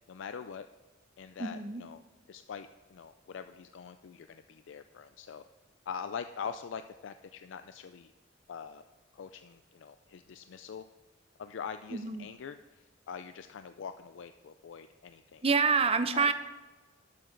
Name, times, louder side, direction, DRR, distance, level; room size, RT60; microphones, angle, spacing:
voice 1, 0.1-0.7 1.2-2.0 2.3-5.4 5.9-8.1 8.5-8.8 9.1-10.9 11.4-15.4 16.1-16.3, left 6 dB, 70° left, 10 dB, 0.4 m, -43 dB
voice 2, 1.4-1.8 11.9-12.3 15.4-16.3, right 5 dB, 30° right, 11 dB, 0.6 m, -27 dB
11.5 x 8.6 x 3.9 m, 1.3 s
head